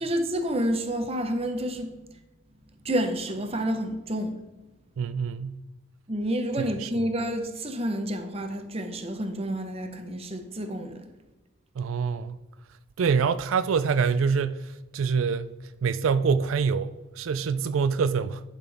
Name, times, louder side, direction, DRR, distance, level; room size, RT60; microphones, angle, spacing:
voice 1, 0.0-1.9 2.8-4.4 6.1-11.1, equal, 30° right, 0.9 m, -29 dB
voice 2, 5.0-5.6 6.6-6.9 11.8-12.4 13.0-15.5 15.8-18.4, right 5 dB, 90° right, 0.4 m, -25 dB
11.0 x 5.9 x 3.5 m
head